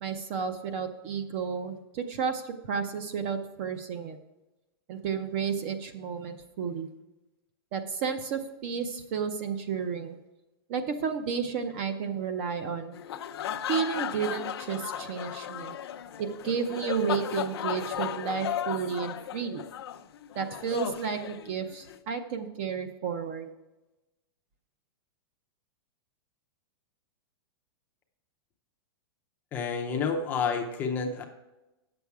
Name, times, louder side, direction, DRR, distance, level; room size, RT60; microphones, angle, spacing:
voice 1, 0.0-4.2 4.9-6.9 7.7-10.2 10.7-13.0 13.7-15.8 16.2-19.6 20.3-23.5, right 6 dB, 30° right, 9 dB, 0.6 m, -32 dB
sound 1, 12.9-22.0, left 10 dB, 75° left, 0.6 m, -35 dB
voice 2, 29.5-31.2, left 5 dB, 15° left, 3 dB, 0.5 m, -29 dB
9.2 x 7.0 x 4.7 m, 1.0 s
supercardioid pair, 180°, 13 cm